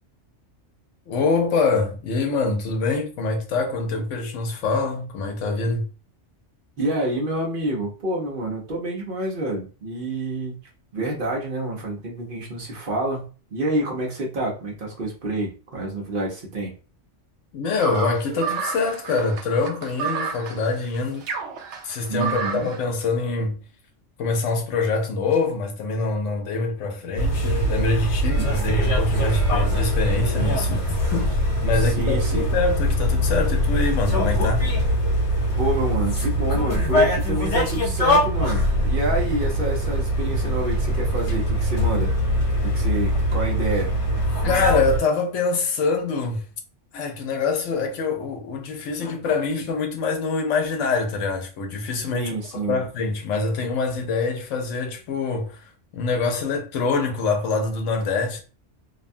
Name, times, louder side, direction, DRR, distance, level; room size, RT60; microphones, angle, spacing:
voice 1, 1.1-5.9 17.5-21.3 21.8-23.6 24.2-34.6 44.4-46.4 46.9-58.4, left 4 dB, 80° left, 1.0 m, -25 dB
voice 2, 6.8-10.6 10.9-16.7 22.1-22.7 28.3-28.6 31.7-32.4 35.5-42.1 42.6-43.9 52.1-52.8, right 1 dB, 50° right, 0.9 m, -28 dB
sound 1, 17.8-22.8, right 6 dB, 75° right, 0.9 m, -30 dB
sound 2, 27.2-45.0, equal, 65° left, 1.2 m, -22 dB
2.7 x 2.2 x 2.6 m
omnidirectional pair, 1.2 m